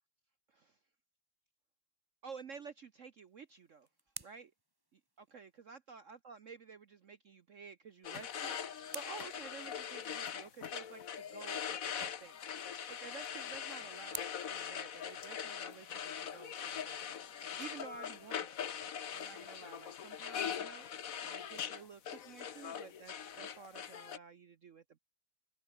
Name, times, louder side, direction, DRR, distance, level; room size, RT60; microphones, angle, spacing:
voice 1, 2.2-3.9 4.2-4.5 4.9-12.4 12.9-18.7 19.1-25.0, right 5 dB, 55° right, 0.9 m, -52 dB
sound 1, 3.2-5.7 7.8-10.3 12.5-15.6, right 1 dB, 10° right, 2.3 m, -54 dB
sound 2, 8.0-24.2, left 8 dB, 50° left, 1.4 m, -42 dB
open air
omnidirectional pair, 2.2 m